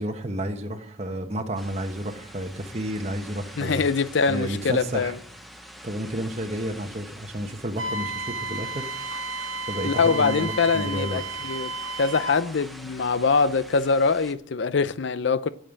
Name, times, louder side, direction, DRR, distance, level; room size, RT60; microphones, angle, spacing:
voice 1, 0.0-3.9 4.3-5.1 5.8-8.9 9.7-11.4, right 1 dB, 35° right, 1.1 m, -31 dB
sound 1, 1.6-14.3, equal, ahead, 0.8 m, -45 dB
voice 2, 3.6-5.2 9.8-11.7 12.0-15.5, left 4 dB, 65° left, 0.5 m, -23 dB
Wind instrument woodwind instrument, 7.8-12.4, right 2 dB, 85° right, 0.9 m, -33 dB
sound 2, 9.1-9.2 9.5-9.6 10.0-10.1 10.5-10.6 10.9-11.0 11.3-11.4 11.8-11.9 12.2-12.3 12.6-12.7 13.0-13.1 13.4-13.8, left 1 dB, 40° left, 2.7 m, -47 dB
9.0 x 7.8 x 8.7 m
head